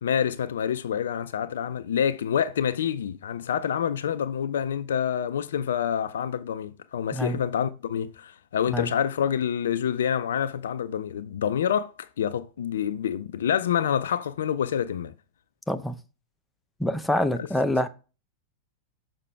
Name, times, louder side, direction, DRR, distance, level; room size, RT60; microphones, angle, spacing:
voice 1, 0.0-15.1 17.4-17.5, left 8 dB, 65° left, 0.4 m, -27 dB
voice 2, 16.8-17.9, left 1 dB, 5° left, 0.7 m, -25 dB
6.6 x 5.7 x 3.3 m
figure-of-eight pair, 90°, 0 cm